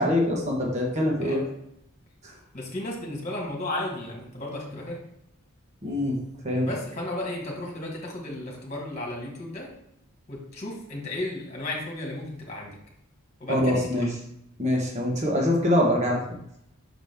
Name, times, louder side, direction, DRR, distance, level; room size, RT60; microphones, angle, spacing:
voice 1, 0.0-1.4 5.8-6.2 6.4-6.7 13.5-14.1 14.6-16.2, left 1 dB, 35° right, -2 dB, 1.3 m, -24 dB
voice 2, 2.5-5.0 6.6-9.7 10.3-12.7 13.4-14.1, left 1 dB, 35° left, -2 dB, 1.9 m, -34 dB
6.1 x 5.1 x 3.6 m, 0.76 s
head